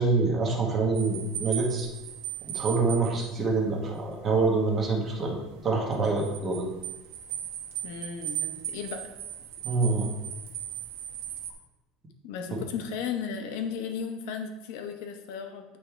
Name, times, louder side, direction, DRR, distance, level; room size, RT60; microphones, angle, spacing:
voice 1, 0.0-1.9 2.4-5.4 5.6-6.6 9.6-10.1 12.5-12.6, right 3 dB, 20° right, -1 dB, 1.1 m, -26 dB
sound 1, 0.9-11.5, right 11 dB, 80° right, 1.2 m, -38 dB
voice 2, 7.8-9.0 12.2-15.8, left 6 dB, 65° left, 5 dB, 0.8 m, -35 dB
9.0 x 3.4 x 4.5 m, 1.1 s
cardioid pair, 175°, 0 cm